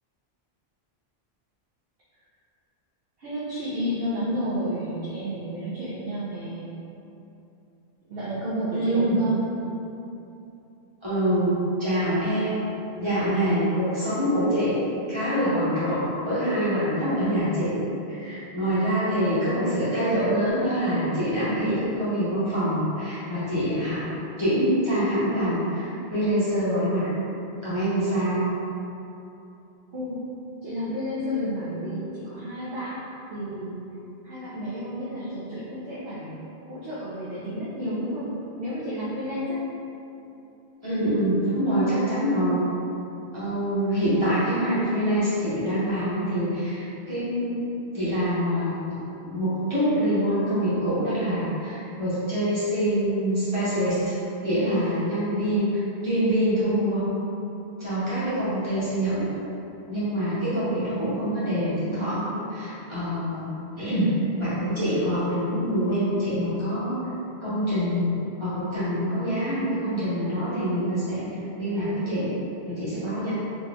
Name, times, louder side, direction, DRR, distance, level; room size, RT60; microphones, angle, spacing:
voice 1, 3.2-6.7 8.1-9.4 29.9-30.2 30.6-33.0 33.3-33.8 34.2-36.4 36.7-38.3 38.6-39.6, equal, 65° right, -9 dB, 0.9 m, -31 dB
voice 2, 8.7-9.2 11.0-12.6 13.0-14.8 15.1-27.1 27.6-28.5 40.8-42.6 43.3-47.6 47.9-48.8 49.2-55.7 56.0-57.1 57.8-59.3 59.9-63.5 63.8-67.0 67.4-68.1 68.4-71.3 71.6-72.3 72.6-73.3, equal, 25° right, -13 dB, 1.3 m, -25 dB
3.9 x 3.1 x 2.3 m, 2.9 s
omnidirectional pair, 1.1 m